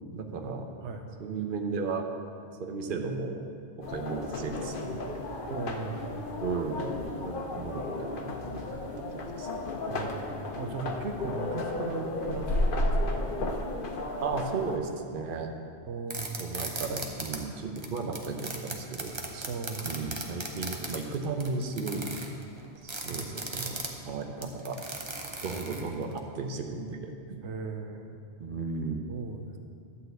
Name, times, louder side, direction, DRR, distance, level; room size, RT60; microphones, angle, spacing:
voice 1, 0.1-0.7 1.2-2.0 2.6-3.4 3.9-5.3 6.4-8.6 9.0-9.5 9.9-10.0 11.3-11.4 14.2-15.5 16.4-19.5 19.8-22.1 22.8-23.8 24.0-24.8 25.4-27.4 28.4-29.0, right 4 dB, 50° right, 3 dB, 0.9 m, -35 dB
sound 1, 3.8-14.8, left 2 dB, 50° left, 0.9 m, -33 dB
voice 2, 5.5-6.1 9.9-13.2 15.9-16.4 19.5-20.0 23.1-23.3 25.5-25.7 27.4-28.2 29.1-29.6, right 4 dB, 80° right, 5 dB, 1.0 m, -38 dB
sound 2, 16.1-17.4 17.8-26.2, right 2 dB, 25° right, 0.8 m, -36 dB
12.0 x 4.1 x 7.9 m, 2.4 s
omnidirectional pair, 1.2 m